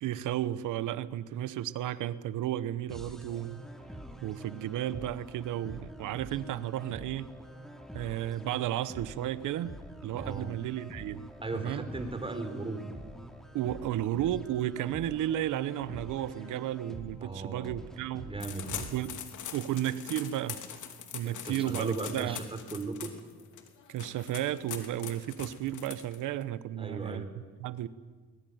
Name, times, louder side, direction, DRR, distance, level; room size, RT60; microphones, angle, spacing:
voice 1, 0.0-3.6 4.2-7.3 7.9-11.2 11.5-11.8 13.5-18.3 18.8-19.2 19.5-20.6 21.1-22.4 23.9-27.3 27.6-27.9, right 12 dB, 85° right, 15 dB, 1.1 m, -33 dB
sound 1, 2.9-18.9, right 1 dB, ahead, 2.9 m, -46 dB
voice 2, 10.2-10.5 11.4-12.8 17.2-17.8 18.2-18.8 21.2-23.1 26.8-27.3, right 3 dB, 20° right, 6 dB, 4.2 m, -37 dB
sound 2, 18.4-26.4, left 9 dB, 75° left, 3.0 m, -43 dB
22.0 x 20.5 x 9.5 m, 1.4 s
cardioid pair, 90°, 30 cm